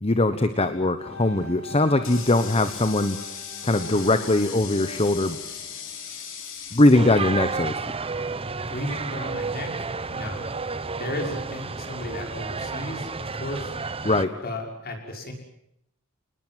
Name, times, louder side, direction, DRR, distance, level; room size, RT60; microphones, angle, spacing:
voice 1, 0.0-3.2 3.6-5.4 6.7-7.7 14.0-14.4, left 2 dB, 25° left, 10 dB, 1.2 m, -21 dB
sound 1, 1.0-6.7, equal, 80° left, 7.9 m, -42 dB
Water tap faucet, 1.4-7.9, left 7 dB, 60° left, 4.3 m, -39 dB
sound 2, 6.9-14.2, right 4 dB, 25° right, 0.9 m, -31 dB
voice 2, 8.6-10.5 11.0-13.7 14.4-15.3, left 1 dB, 45° left, 3 dB, 6.0 m, -34 dB
28.5 x 20.0 x 7.7 m, 0.75 s
head